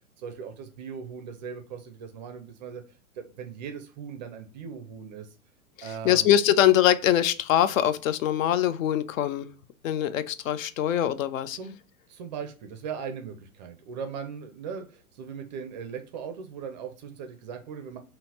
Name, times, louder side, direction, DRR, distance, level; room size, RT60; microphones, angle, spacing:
voice 1, 0.2-2.8 3.2-5.3 5.8-6.3 11.5-11.7 12.1-18.0, right 6 dB, 35° right, 0.4 m, -39 dB
voice 2, 5.8-9.5 9.8-11.6, left 11 dB, 70° left, 0.5 m, -23 dB
3.9 x 2.1 x 2.7 m
hypercardioid pair, 115°, 42 cm